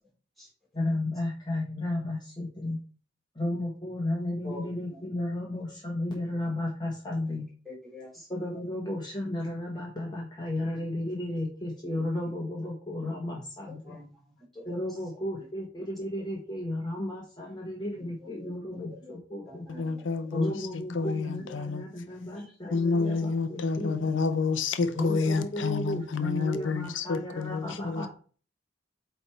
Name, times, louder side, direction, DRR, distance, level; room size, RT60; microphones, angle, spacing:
voice 1, 0.7-2.8 3.3-7.4 8.3-14.0 14.7-19.6 20.3-24.1 24.9-28.1, left 1 dB, 25° left, 1.4 m, -33 dB
voice 2, 4.4-5.1 7.6-8.3 11.9-12.1 13.7-14.8 15.4-15.5 18.0-19.1 19.4-20.1 21.3-21.7 22.3-22.7 25.2-25.4 26.5-26.7, left 2 dB, ahead, 3.4 m, -46 dB
voice 3, 19.7-21.8 22.7-28.1, left 4 dB, 90° left, 0.6 m, -29 dB
8.2 x 3.4 x 4.4 m
head